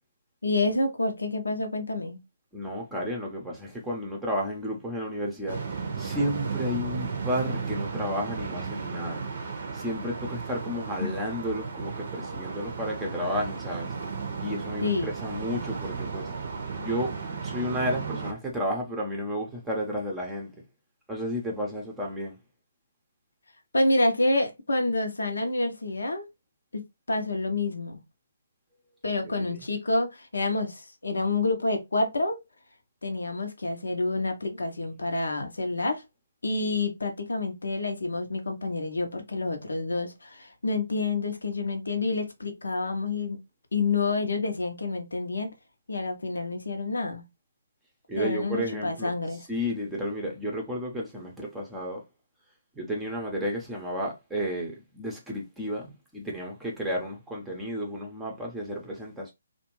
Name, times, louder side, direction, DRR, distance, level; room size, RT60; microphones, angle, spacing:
voice 1, 0.4-2.2 11.0-11.2 14.8-15.1 23.7-26.2 26.7-26.8 27.1-28.0 29.0-32.4 33.0-36.0 36.4-43.4 43.7-45.5 45.9-47.2 48.2-49.4, left 2 dB, 80° left, 0.7 m, -28 dB
voice 2, 2.5-5.6 6.0-9.2 9.7-13.9 14.4-16.3 16.8-17.2 17.4-20.5 21.1-22.4 29.2-29.6 48.1-49.1 49.5-52.0 52.8-59.3, equal, 5° right, 0.7 m, -32 dB
sound 1, 5.5-18.3, right 5 dB, 50° right, 0.6 m, -34 dB
2.5 x 2.2 x 3.0 m
figure-of-eight pair, 145°, 0 cm